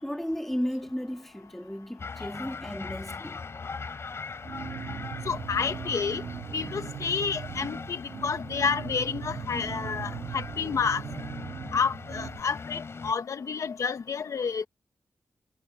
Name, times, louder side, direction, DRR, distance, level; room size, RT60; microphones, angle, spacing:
voice 1, 0.0-3.4, equal, 5° left, 2.2 m, -34 dB
sound 1, 2.0-13.1, left 4 dB, 45° left, 5.7 m, -40 dB
sound 2, 4.4-12.4, right 8 dB, 80° right, 1.4 m, -39 dB
voice 2, 5.2-6.2 6.5-11.0 11.7-14.7, left 6 dB, 60° left, 1.4 m, -30 dB
wide cardioid pair, 105°, 6 cm